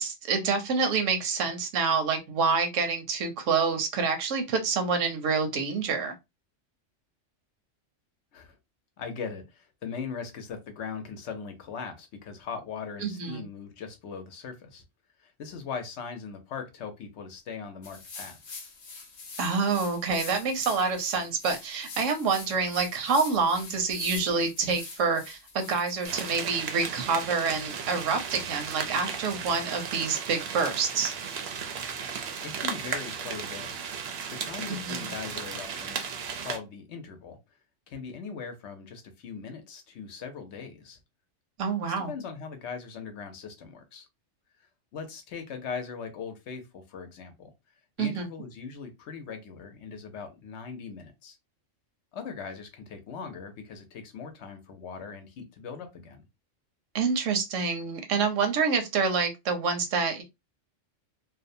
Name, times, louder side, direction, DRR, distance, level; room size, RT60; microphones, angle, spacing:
voice 1, 0.0-6.1 13.0-13.5 19.4-31.1 34.7-35.1 41.6-42.1 48.0-48.3 56.9-60.2, right 5 dB, 80° right, 1.0 m, -27 dB
voice 2, 9.0-14.8 15.2-18.6 32.4-33.7 34.3-36.1 36.4-37.4 37.9-41.0 41.8-44.1 44.6-47.5 48.0-51.4 52.1-56.2, left 6 dB, 65° left, 0.9 m, -40 dB
sound 1, 17.8-26.5, left 4 dB, 50° left, 0.5 m, -43 dB
sound 2, 26.0-36.6, right 6 dB, 65° right, 0.7 m, -35 dB
2.6 x 2.0 x 2.6 m
omnidirectional pair, 1.3 m